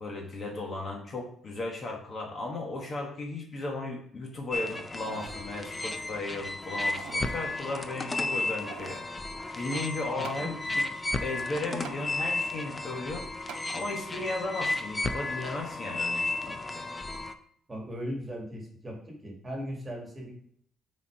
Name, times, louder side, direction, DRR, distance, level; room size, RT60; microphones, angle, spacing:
voice 1, 0.0-9.0 9.5-10.8 11.2-13.3 13.7-16.9, left 2 dB, 35° left, 0 dB, 1.2 m, -36 dB
sound 1, 4.5-17.3, left 2 dB, 15° left, 0.5 m, -33 dB
sound 2, 4.8-5.4 5.9-6.0 6.7-7.3 8.3-9.1 10.2-10.5 11.8-12.0 13.5-13.7 14.3-14.4, right 9 dB, 80° right, 0.5 m, -45 dB
voice 2, 10.1-10.5 17.7-20.3, equal, 15° right, 0 dB, 2.0 m, -38 dB
8.1 x 4.4 x 5.1 m, 0.65 s
cardioid pair, 165°, 0 cm